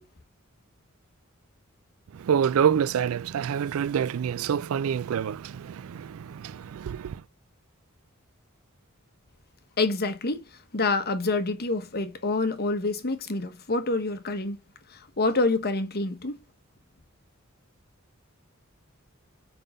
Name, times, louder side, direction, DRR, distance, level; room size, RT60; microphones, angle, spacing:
voice 1, 2.1-7.2, right 8 dB, 75° right, 0.3 m, -27 dB
voice 2, 9.8-10.5 10.7-14.6 14.9-16.4, left 3 dB, 50° left, 1.2 m, -27 dB
5.4 x 5.4 x 5.2 m
head